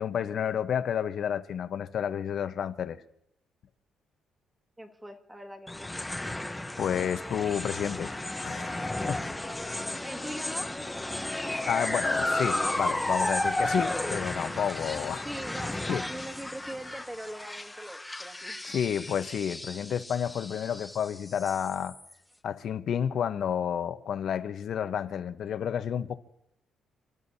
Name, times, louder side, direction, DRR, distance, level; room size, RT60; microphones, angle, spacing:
voice 1, 0.0-3.0 6.8-9.2 11.7-15.3 15.9-16.0 18.6-21.9 22.4-26.2, left 8 dB, 65° left, 0.9 m, -30 dB
voice 2, 4.8-6.1 10.0-10.9 11.4-11.5 13.2-13.4 15.2-18.6, right 1 dB, 10° right, 1.9 m, -41 dB
sound 1, 5.7-22.1, left 1 dB, 10° left, 0.9 m, -33 dB
28.5 x 12.5 x 2.8 m
cardioid pair, 90°, 0 cm